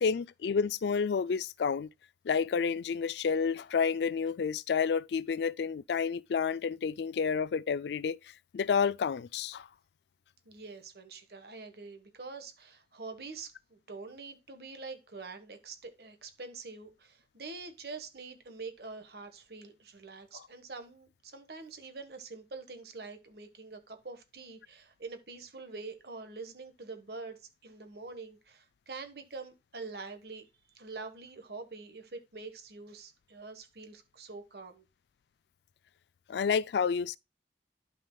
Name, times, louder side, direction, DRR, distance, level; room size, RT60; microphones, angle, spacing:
voice 1, 0.0-1.9 2.3-8.2 8.5-9.7 36.3-37.2, left 6 dB, 70° left, 0.3 m, -30 dB
voice 2, 10.4-30.4 30.7-34.8, right 4 dB, 60° right, 1.3 m, -45 dB
12.0 x 5.1 x 2.3 m
head